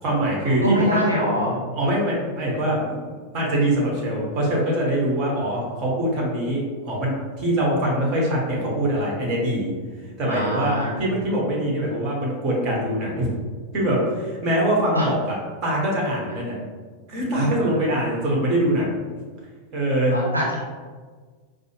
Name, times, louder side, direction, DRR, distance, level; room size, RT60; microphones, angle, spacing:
voice 1, 0.0-1.0 1.7-9.7 10.2-13.3 13.7-16.6 17.1-19.0 19.7-20.2, right 1 dB, 35° right, -3 dB, 1.2 m, -23 dB
voice 2, 0.6-1.6 10.3-11.0 14.9-15.1 17.3-17.8 20.1-20.6, equal, 80° right, -4 dB, 0.5 m, -24 dB
4.5 x 2.1 x 3.2 m, 1.5 s
figure-of-eight pair, 90°, 0 cm